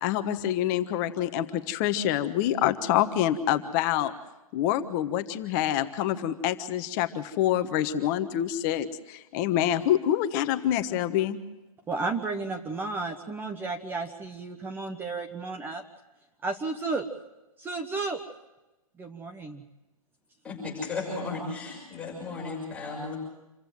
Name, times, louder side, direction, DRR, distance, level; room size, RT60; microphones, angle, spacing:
voice 1, 0.0-4.1 4.5-11.4, left 11 dB, 30° left, 10 dB, 1.3 m, -26 dB
voice 2, 11.9-15.8 16.4-17.1 17.6-18.2 19.0-19.6, right 3 dB, 10° right, 6 dB, 1.1 m, -33 dB
voice 3, 20.4-23.2, left 3 dB, 5° left, -5 dB, 6.5 m, -35 dB
27.5 x 15.0 x 7.8 m, 1.0 s
hypercardioid pair, 140°, 19 cm